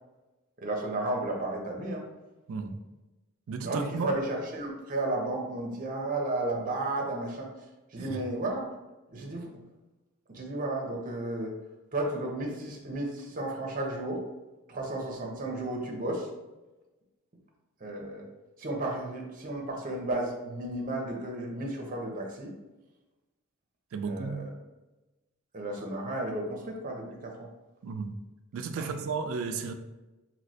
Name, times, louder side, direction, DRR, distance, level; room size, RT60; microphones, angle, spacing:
voice 1, 0.6-2.1 3.6-7.5 7.9-8.6 9.1-9.5 10.3-11.5 11.9-14.2 14.7-16.3 17.8-18.3 18.6-22.5 24.1-24.5 25.5-27.5 28.8-29.0, right 2 dB, 40° right, 0 dB, 0.7 m, -33 dB
voice 2, 3.5-4.1 8.0-8.2 23.9-24.5 27.8-28.2 28.5-29.7, right 5 dB, 75° right, 7 dB, 0.4 m, -33 dB
3.1 x 2.9 x 2.7 m, 1.1 s
head